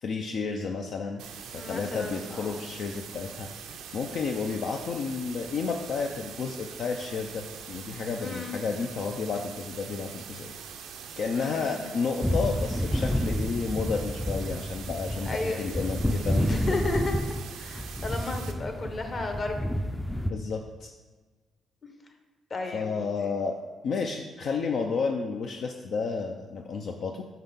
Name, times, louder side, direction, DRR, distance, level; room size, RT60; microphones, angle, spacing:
voice 1, 0.0-1.2 1.5-10.5 11.2-16.6 20.3-20.9 22.7-23.6 23.8-27.2, left 5 dB, 65° left, 3 dB, 0.4 m, -31 dB
sound 1, 1.2-18.5, right 7 dB, 85° right, 0.5 m, -43 dB
voice 2, 1.6-2.6 8.2-8.6 11.3-12.1 15.3-15.6 16.4-17.1 17.5-19.7 22.5-22.9, left 2 dB, 35° left, 4 dB, 0.9 m, -33 dB
sound 2, 12.2-20.3, equal, 5° left, 0.4 m, -29 dB
5.6 x 5.6 x 3.5 m, 1.3 s
cardioid pair, 90°, 0 cm